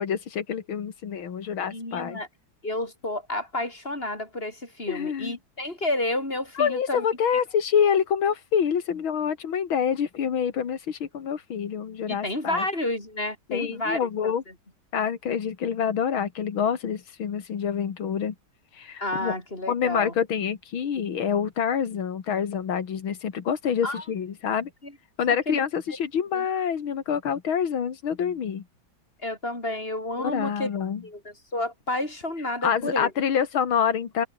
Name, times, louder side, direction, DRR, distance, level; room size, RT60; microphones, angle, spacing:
voice 1, 0.0-2.2 4.9-5.4 6.5-12.6 13.5-14.4 14.9-18.3 18.7-19.4 19.7-24.7 25.2-28.6 30.2-31.0 32.6-34.3, left 7 dB, 90° left, 2.7 m, -26 dB
voice 2, 1.7-2.3 2.6-7.0 12.1-14.3 19.0-20.1 23.8-24.0 24.8-24.9 25.5-25.6 26.3-26.4 29.2-30.7 31.0-33.1, left 1 dB, 25° left, 6.3 m, -30 dB
omnidirectional pair, 2.2 m